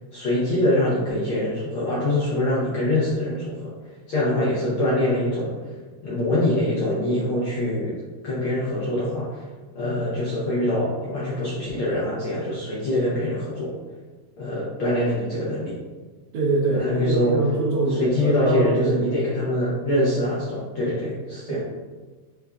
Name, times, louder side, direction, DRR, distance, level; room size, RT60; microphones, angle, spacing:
voice 1, 0.1-3.7 4.1-5.5 6.0-7.9 8.2-9.4 9.7-13.7 14.4-15.8 16.8-17.4 17.9-21.6, left 1 dB, 85° left, -7 dB, 1.1 m, -24 dB
voice 2, 16.3-19.1 21.5-21.7, right 2 dB, 75° right, -5 dB, 1.4 m, -24 dB
5.2 x 3.4 x 2.3 m, 1.3 s
omnidirectional pair, 3.3 m